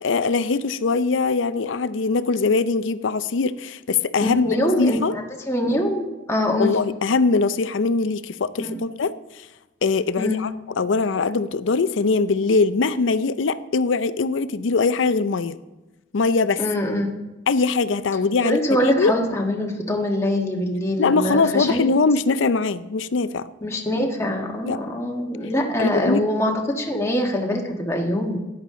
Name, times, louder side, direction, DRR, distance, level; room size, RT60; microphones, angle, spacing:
voice 1, 0.0-5.1 6.6-9.1 9.8-15.6 16.1-16.6 17.5-19.1 21.0-23.5 24.6-24.8 25.8-26.3, left 4 dB, 75° left, 14 dB, 0.5 m, -22 dB
voice 2, 4.2-6.7 8.6-8.8 10.2-10.4 16.6-17.1 18.4-21.9 23.6-28.4, left 1 dB, 15° left, 0 dB, 1.5 m, -24 dB
13.0 x 10.5 x 3.8 m, 1.1 s
head